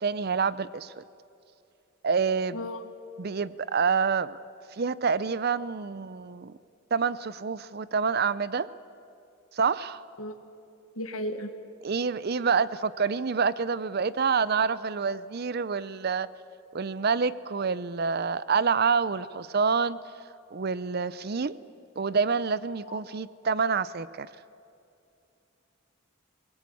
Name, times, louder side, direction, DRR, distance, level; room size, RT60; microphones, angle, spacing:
voice 1, 0.0-1.0 2.0-2.6 3.2-4.4 4.8-6.5 6.9-8.7 9.5-10.0 11.8-16.3 16.7-20.0 20.5-21.6 22.0-24.3, right 5 dB, 45° right, 17 dB, 0.5 m, -27 dB
voice 2, 2.5-2.9 10.2-10.3 10.9-11.5 22.8-23.2, equal, 75° left, 6 dB, 1.6 m, -35 dB
23.0 x 20.0 x 8.6 m, 2.6 s
head